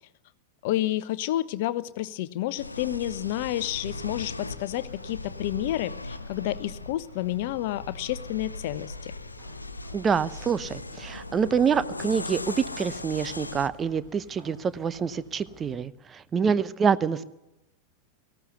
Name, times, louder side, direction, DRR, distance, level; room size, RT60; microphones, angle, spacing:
voice 1, 0.6-9.1, left 14 dB, 50° left, 16 dB, 0.9 m, -30 dB
sound 1, 2.5-15.8, right 4 dB, 45° right, 6.7 m, -53 dB
sound 2, 2.6-13.7, left 2 dB, 80° left, 0.8 m, -38 dB
voice 2, 9.9-17.2, right 6 dB, 20° right, 15 dB, 0.8 m, -26 dB
18.5 x 15.5 x 9.2 m, 0.95 s
figure-of-eight pair, 90°, 0 cm